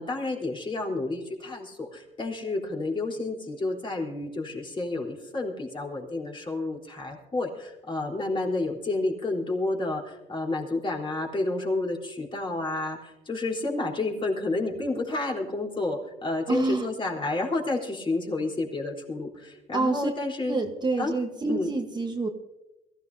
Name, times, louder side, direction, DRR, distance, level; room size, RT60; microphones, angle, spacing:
voice 1, 0.0-20.6 21.0-21.1 21.4-21.7, left 2 dB, 30° left, -1 dB, 3.7 m, -30 dB
voice 2, 16.5-16.9 19.7-20.1 20.5-22.3, right 3 dB, 25° right, 4 dB, 1.2 m, -27 dB
23.0 x 14.5 x 2.7 m, 1.0 s
cardioid pair, 110°, 17 cm